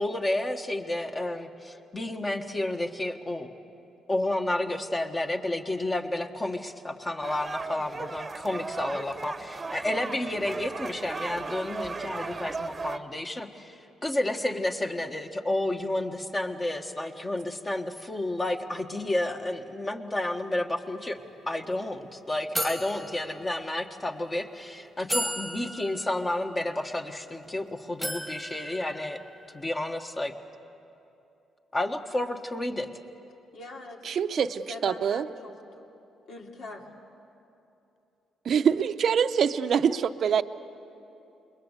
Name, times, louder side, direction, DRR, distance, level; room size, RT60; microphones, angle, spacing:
voice 1, 0.0-3.5 4.1-21.2 21.5-29.2 29.5-30.3 31.7-32.9, left 1 dB, 25° left, 5 dB, 1.5 m, -31 dB
sound 1, 7.2-13.0, right 4 dB, 30° right, 1.0 m, -36 dB
sound 2, 21.2-21.3 21.6-21.8 22.6-24.0 24.6-24.7 25.1-27.5 28.0-29.7, equal, 5° left, 1.8 m, -36 dB
voice 2, 33.5-34.0 34.4-35.9 36.3-36.9, left 2 dB, 70° left, 1 dB, 2.7 m, -42 dB
voice 3, 34.0-35.3 38.4-40.4, right 7 dB, 60° right, 11 dB, 0.7 m, -25 dB
28.0 x 21.5 x 8.2 m, 2.8 s
cardioid pair, 90°, 0 cm